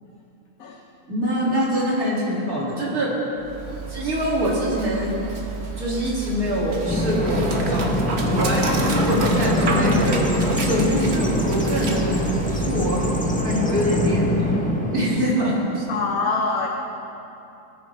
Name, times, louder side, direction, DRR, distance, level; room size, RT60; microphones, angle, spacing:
voice 1, 1.1-3.1 3.9-5.2 5.8-7.9 8.3-10.2 10.6-13.0 13.3-15.8, equal, 65° right, -5 dB, 3.0 m, -24 dB
Dog, 3.4-13.3, right 3 dB, 45° right, 1.2 m, -30 dB
Bird vocalization bird call bird song, 6.9-15.2, left 1 dB, 15° left, 0.3 m, -23 dB
voice 2, 15.9-16.7, left 4 dB, 65° left, 0 dB, 1.3 m, -24 dB
18.0 x 9.8 x 3.3 m, 2.8 s
omnidirectional pair, 1.7 m